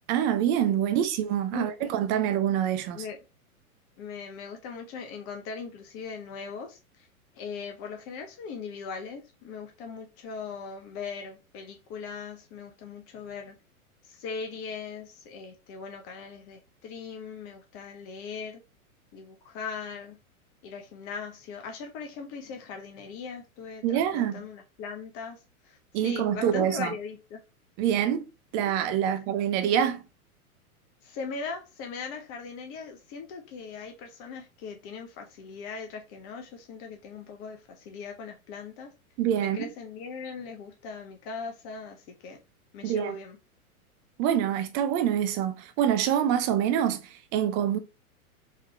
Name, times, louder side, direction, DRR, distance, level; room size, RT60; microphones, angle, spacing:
voice 1, 0.1-3.0 23.8-24.5 25.9-26.9 27.8-28.2 28.5-30.0 39.2-39.7 42.8-43.2 44.2-47.0 47.3-47.8, right 10 dB, 25° right, 0.4 m, -26 dB
voice 2, 1.5-2.2 2.9-3.2 4.0-7.1 7.4-13.5 14.0-18.6 19.1-20.2 20.6-25.4 25.6-25.8 26.0-27.4 28.7-28.8 29.0-29.2 31.0-38.9 39.4-42.4 42.7-43.4, left 5 dB, 30° left, 0.8 m, -39 dB
3.7 x 3.3 x 3.2 m
figure-of-eight pair, 105°, 44 cm